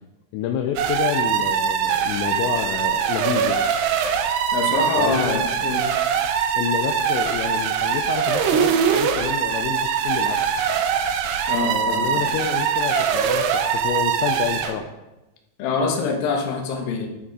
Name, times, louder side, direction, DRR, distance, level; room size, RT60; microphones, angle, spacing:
voice 1, 0.3-3.6 5.0-5.5 6.5-10.5 11.5-14.9, left 9 dB, 80° left, 5 dB, 2.6 m, -28 dB
sound 1, 0.8-14.8, right 7 dB, 80° right, 2.4 m, -22 dB
voice 2, 4.5-5.8 11.5-12.3 15.6-17.1, left 4 dB, 65° left, 2 dB, 2.6 m, -25 dB
11.5 x 6.3 x 4.7 m, 1.0 s
omnidirectional pair, 5.5 m